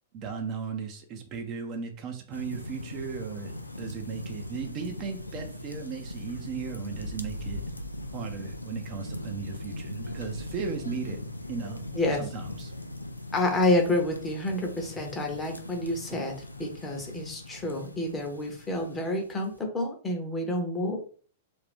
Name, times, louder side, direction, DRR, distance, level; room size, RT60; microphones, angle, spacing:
voice 1, 0.1-7.6 8.1-11.2 11.5-11.8 12.1-12.7, right 6 dB, 35° right, 4 dB, 0.5 m, -36 dB
sound 1, 2.3-19.6, left 1 dB, 90° left, 0.4 m, -39 dB
voice 2, 12.0-12.3 13.3-21.0, left 1 dB, 15° left, 2 dB, 0.8 m, -29 dB
2.6 x 2.4 x 3.5 m, 0.43 s
figure-of-eight pair, 100°, 0 cm